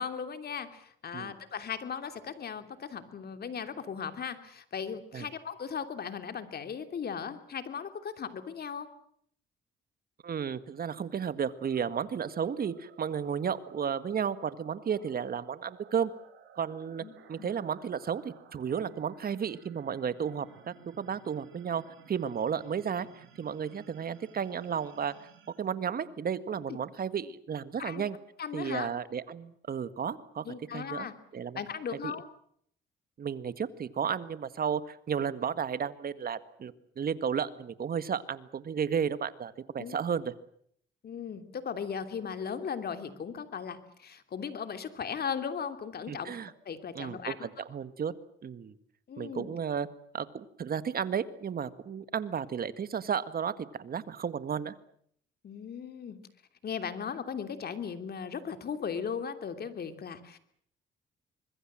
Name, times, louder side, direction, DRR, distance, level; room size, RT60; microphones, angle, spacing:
voice 1, 0.0-8.9 17.0-17.1 17.4-17.5 26.7-26.8 27.8-28.0 28.4-28.9 30.4-31.1 31.5-32.2 39.8-40.0 41.0-46.3 46.6-47.5 49.1-49.5 55.4-56.2 56.6-60.4, left 7 dB, 50° left, 9 dB, 3.0 m, -37 dB
voice 2, 10.2-16.1 16.6-21.8 22.1-25.1 25.6-28.2 28.5-30.4 30.7-31.1 31.3-31.6 32.0-32.1 33.2-40.3 46.1-46.5 47.0-48.1 48.4-48.8 49.2-49.9 50.1-54.7, right 7 dB, 50° right, 14 dB, 1.8 m, -33 dB
sound 1, 11.4-26.6, right 7 dB, 80° right, 6.5 m, -57 dB
25.0 x 21.5 x 7.6 m, 0.66 s
cardioid pair, 90°, 20 cm